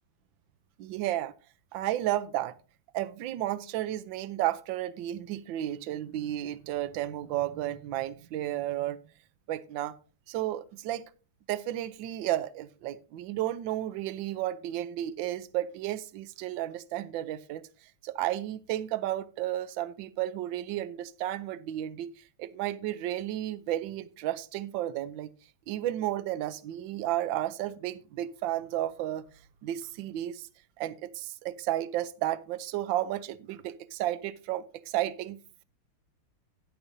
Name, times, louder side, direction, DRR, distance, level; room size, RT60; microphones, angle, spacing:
voice 1, 0.8-1.3 1.7-2.6 2.9-9.0 9.5-10.0 10.3-11.1 11.5-25.3 25.7-29.2 29.6-30.5 30.8-35.4, right 13 dB, 75° right, 1.3 m, -33 dB
12.0 x 10.0 x 2.6 m
omnidirectional pair, 2.3 m